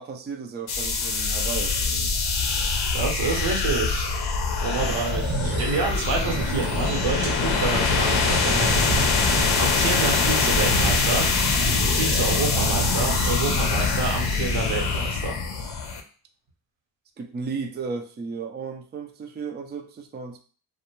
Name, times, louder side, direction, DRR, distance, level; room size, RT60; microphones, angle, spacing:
voice 1, 0.0-1.8 4.6-5.0 17.2-20.4, right 5 dB, 25° right, 5 dB, 0.3 m, -34 dB
sound 1, 0.7-16.0, left 4 dB, 60° left, 0.6 m, -24 dB
voice 2, 2.9-4.1 4.6-11.3 11.9-15.4, right 4 dB, 90° right, 0 dB, 0.9 m, -28 dB
sound 2, 4.6-15.2, right 4 dB, 50° right, 0.7 m, -32 dB
2.5 x 2.1 x 3.0 m, 0.40 s
cardioid pair, 80°, 44 cm